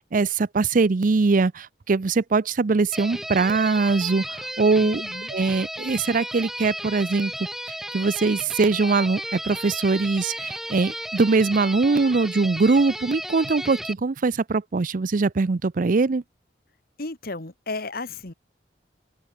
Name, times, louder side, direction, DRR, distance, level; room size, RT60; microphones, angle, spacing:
voice 1, 0.0-5.0 5.3-7.3 7.7-16.2, right 4 dB, 50° right, 0.5 m, -22 dB
sound 1, 2.9-13.9, equal, ahead, 1.7 m, -34 dB
voice 2, 4.8-5.3 17.0-18.3, left 3 dB, 55° left, 2.0 m, -34 dB
head